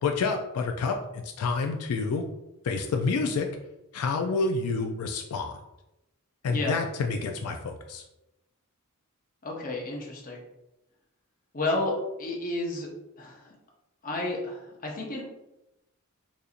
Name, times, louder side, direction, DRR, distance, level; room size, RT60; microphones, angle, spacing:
voice 1, 0.0-2.2 2.6-3.5 3.9-5.6 6.4-8.0, left 4 dB, 80° left, 4 dB, 0.3 m, -28 dB
voice 2, 6.4-6.8 9.4-10.4 11.5-11.9 12.2-12.9 13.2-13.5 14.0-15.2, left 2 dB, 40° left, -1 dB, 0.7 m, -31 dB
4.1 x 2.6 x 2.4 m, 0.93 s
head